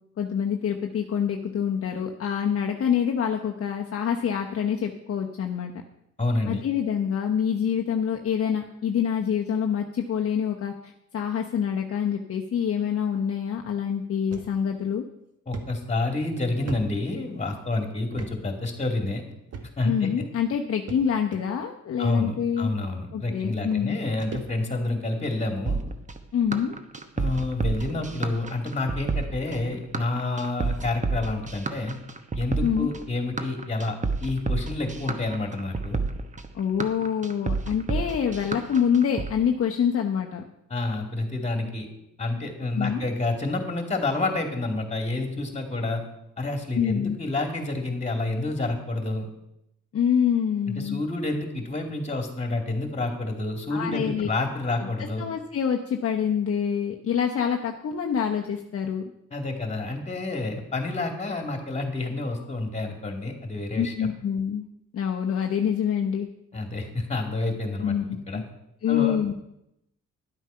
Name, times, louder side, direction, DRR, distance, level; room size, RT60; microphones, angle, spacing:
voice 1, 0.2-5.7 6.5-15.0 19.8-22.7 23.1-24.0 26.3-26.7 32.6-32.9 36.5-40.4 42.7-43.0 46.7-47.2 49.9-51.0 53.7-54.3 54.8-54.9 55.2-59.0 63.8-64.7 64.9-66.3 67.8-68.0 68.3-68.4 68.8-69.3, left 8 dB, 50° left, 1 dB, 1.0 m, -26 dB
voice 2, 6.2-6.6 15.5-19.2 19.8-20.1 22.0-25.8 27.2-31.9 32.3-36.0 40.7-41.9 42.2-46.0 46.4-49.3 50.7-55.2 59.3-64.1 66.5-67.9 68.3-68.4 68.9-69.2, left 2 dB, 20° left, 4 dB, 2.5 m, -29 dB
sound 1, 14.3-14.5 14.9-15.0 15.5-17.6 18.1-18.3 18.6-18.8 19.5-20.0 20.9-21.4 22.3-22.4 23.4-23.5 23.7-24.9 25.3-25.6 26.4-26.5 27.0-27.1 27.3-27.5 27.9-28.1, right 4 dB, 55° right, 1.5 m, -40 dB
sound 2, 25.7-39.3, right 4 dB, 25° right, 1.1 m, -30 dB
11.0 x 8.1 x 5.7 m, 0.83 s
cardioid pair, 90°, 30 cm